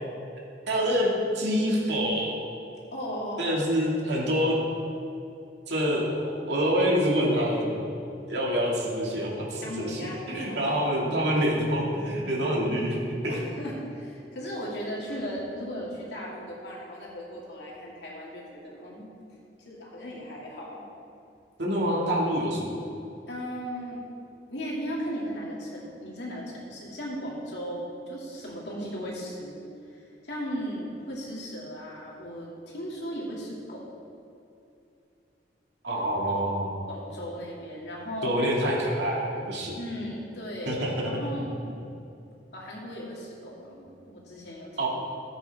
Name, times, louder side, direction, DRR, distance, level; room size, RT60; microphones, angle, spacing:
voice 1, 0.7-1.1 1.3-2.4 3.4-4.6 5.7-7.8 8.3-13.0 13.2-13.4 21.6-22.7 35.8-36.7 38.2-39.7 40.7-41.3 44.8-44.9, equal, 75° right, -3 dB, 2.3 m, -26 dB
voice 2, 2.9-4.4 9.6-10.9 13.3-19.1 19.6-20.8 23.3-24.0 24.5-29.6 29.9-33.9 35.9-36.0 36.4-36.5 36.9-38.5 39.7-41.5 42.5-44.9, equal, 75° left, -4 dB, 2.5 m, -37 dB
14.5 x 8.1 x 3.6 m, 2.7 s
head